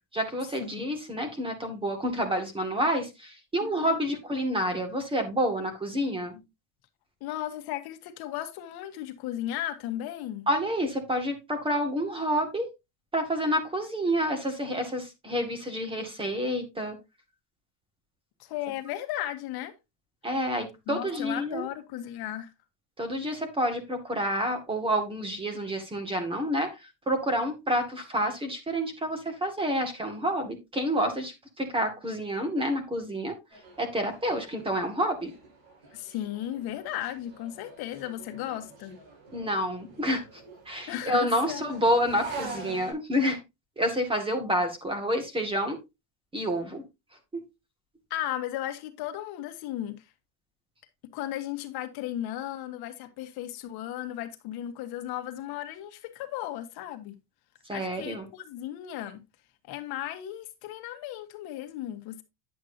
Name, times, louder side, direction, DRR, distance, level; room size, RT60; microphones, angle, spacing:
voice 1, 0.1-6.4 10.5-12.7 13.1-17.0 20.2-21.7 23.0-33.4 33.8-35.3 39.3-43.4 43.8-45.8 46.3-46.8 47.3-47.5 57.7-58.3, equal, 10° right, 2.1 m, -29 dB
voice 2, 3.6-3.9 7.2-10.5 18.4-19.7 20.9-22.5 35.9-39.0 40.9-41.7 48.1-50.0 51.1-57.1 57.7-59.2 59.7-62.2, left 12 dB, 60° left, 1.5 m, -35 dB
sound 1, 33.5-42.9, right 3 dB, 75° right, 6.5 m, -45 dB
10.0 x 7.8 x 2.7 m
cardioid pair, 160°, 41 cm